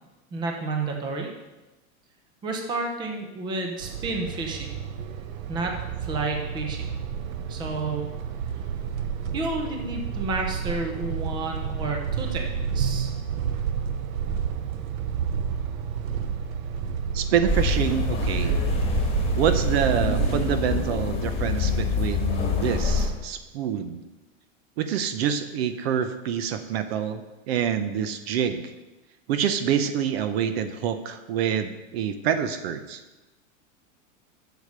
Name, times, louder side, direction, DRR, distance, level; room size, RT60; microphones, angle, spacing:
voice 1, 0.3-1.3 2.4-4.8 5.5-6.9 7.5-8.2 9.3-13.1, right 3 dB, 10° right, 2 dB, 0.7 m, -31 dB
sound 1, 3.8-20.6, right 7 dB, 85° right, 1.0 m, -30 dB
voice 2, 17.1-18.6 19.3-24.0 24.8-28.6 29.3-33.0, right 8 dB, 50° right, 10 dB, 0.7 m, -26 dB
sound 2, 17.5-23.1, left 4 dB, 15° left, 1.4 m, -26 dB
8.2 x 6.7 x 6.6 m, 1.1 s
supercardioid pair, 170°, 40 cm